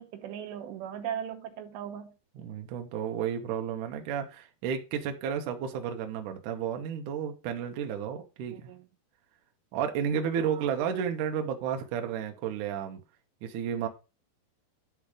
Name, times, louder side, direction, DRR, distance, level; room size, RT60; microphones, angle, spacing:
voice 1, 0.0-2.2 8.5-8.8 10.4-10.6, right 9 dB, 85° right, 3.1 m, -38 dB
voice 2, 2.4-8.7 9.7-13.0 13.4-13.9, right 8 dB, 70° right, 2.0 m, -32 dB
10.5 x 4.0 x 4.9 m
omnidirectional pair, 4.9 m